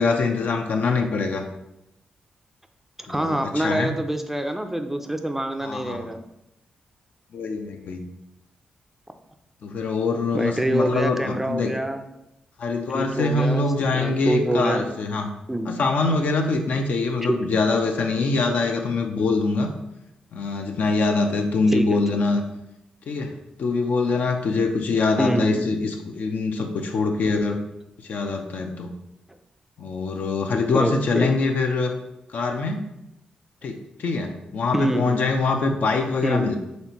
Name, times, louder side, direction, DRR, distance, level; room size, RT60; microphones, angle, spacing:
voice 1, 0.0-1.4 3.1-3.9 5.6-6.1 7.3-8.0 9.6-11.7 12.6-15.3 15.6-19.7 20.3-22.4 23.1-23.3 23.6-27.6 28.0-28.9 29.8-31.9 32.3-32.8 33.6-36.6, left 3 dB, 70° left, 4 dB, 0.5 m, -24 dB
voice 2, 3.0-6.2 10.3-12.0 12.9-13.7 13.9-14.9 15.5-15.7 17.3-17.4 21.7-22.0 25.2-25.6 30.7-31.3 34.7-35.2 36.2-36.4, right 1 dB, 10° right, 6 dB, 0.4 m, -25 dB
4.2 x 3.3 x 2.9 m, 0.86 s
cardioid pair, 55°, 3 cm